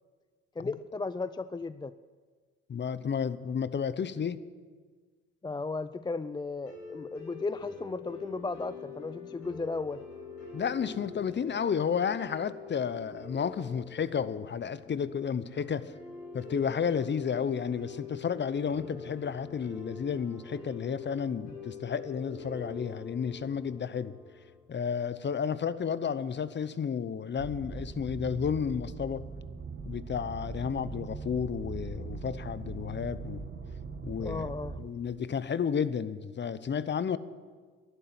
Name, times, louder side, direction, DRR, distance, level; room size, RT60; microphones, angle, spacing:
voice 1, 0.6-1.9 5.4-10.0 34.2-34.8, left 3 dB, 15° left, 14 dB, 0.4 m, -35 dB
voice 2, 2.7-4.4 10.5-15.9 16.3-24.1 24.7-29.3 29.8-33.4 34.0-34.5 34.8-37.2, left 7 dB, 35° left, 15 dB, 0.9 m, -32 dB
sound 1, 6.6-24.6, left 5 dB, 75° left, 6.2 m, -45 dB
sound 2, 27.4-34.9, right 4 dB, 35° right, 1.8 m, -40 dB
11.5 x 11.5 x 9.5 m, 1.5 s
supercardioid pair, 65°, 30 cm